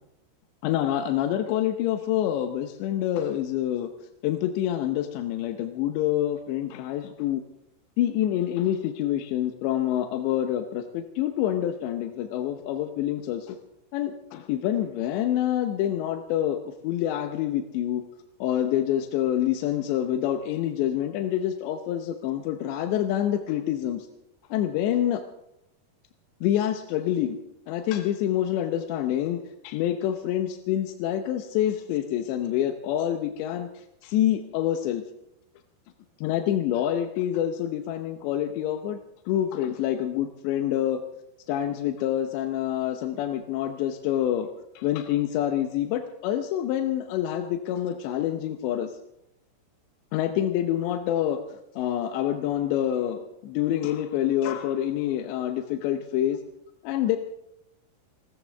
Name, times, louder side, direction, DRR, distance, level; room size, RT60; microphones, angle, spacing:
voice 1, 0.6-3.9 4.2-7.4 8.0-13.6 13.9-18.0 18.4-24.1 24.5-25.2 26.4-27.4 27.7-33.7 34.0-35.0 36.2-39.0 39.3-41.0 41.5-44.5 44.8-48.9 50.1-51.4 51.8-56.4 56.8-57.2, left 11 dB, 85° left, 6 dB, 3.2 m, -27 dB
28.5 x 13.5 x 3.5 m, 0.84 s
omnidirectional pair, 5.0 m